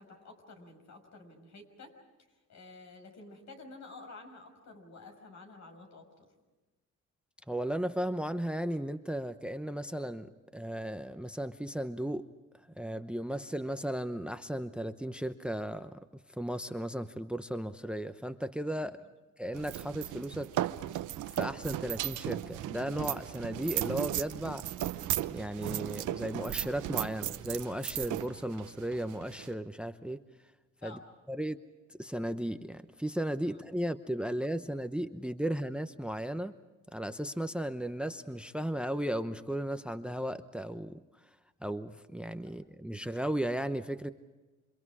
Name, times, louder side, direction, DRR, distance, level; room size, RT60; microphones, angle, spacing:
voice 1, 0.0-1.9 2.5-6.3 30.8-31.0, left 3 dB, 65° left, 5 dB, 6.2 m, -50 dB
voice 2, 7.5-12.3 12.8-16.0 16.3-19.0 19.4-20.5 21.4-24.6 25.3-30.2 30.8-31.0 31.3-31.6 31.9-36.5 36.9-41.0 41.6-44.1, right 1 dB, 5° right, 11 dB, 0.9 m, -35 dB
sound 1, 19.5-29.5, right 13 dB, 80° right, 0.9 m, -36 dB
28.5 x 26.0 x 4.9 m, 1.2 s
cardioid pair, 90°, 30 cm